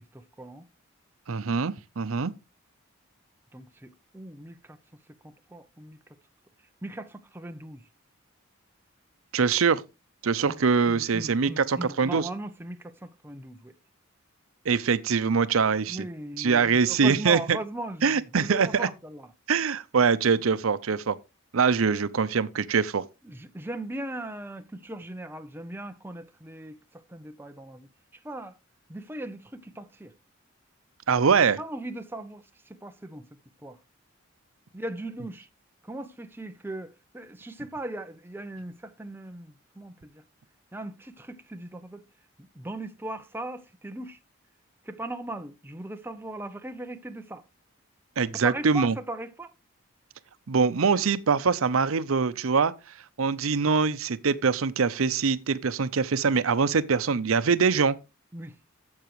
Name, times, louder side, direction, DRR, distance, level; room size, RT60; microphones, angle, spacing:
voice 1, 0.1-0.6 3.5-4.8 5.2-6.0 6.8-7.9 10.5-10.6 10.9-13.7 15.9-19.3 23.2-28.6 28.9-30.1 31.6-33.8 34.7-35.5 35.8-40.2 40.7-42.0 42.4-44.2 44.8-47.4 48.3-49.5 58.3-58.6, right 1 dB, 10° right, 0.6 m, -39 dB
voice 2, 1.3-2.3 9.3-9.8 10.2-12.3 14.7-16.1 16.4-17.6 18.0-18.9 19.5-21.2 21.5-23.0 31.1-31.6 48.2-48.9 50.5-52.7 53.2-58.0, right 5 dB, 85° right, 0.6 m, -23 dB
12.0 x 7.5 x 3.1 m
head